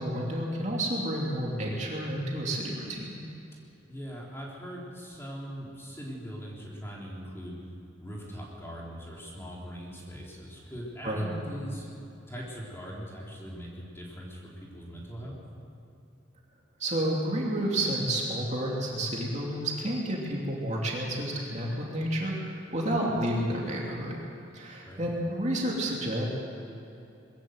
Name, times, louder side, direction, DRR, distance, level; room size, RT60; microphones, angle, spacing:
voice 1, 0.0-3.2 11.0-11.4 16.8-24.2 24.5-26.3, right 1 dB, 35° right, -3 dB, 2.8 m, -30 dB
voice 2, 3.9-7.6 8.0-11.9 12.3-15.4 22.9-23.0 24.8-25.1, equal, 15° left, -4 dB, 3.8 m, -41 dB
22.0 x 15.0 x 8.0 m, 2.8 s
head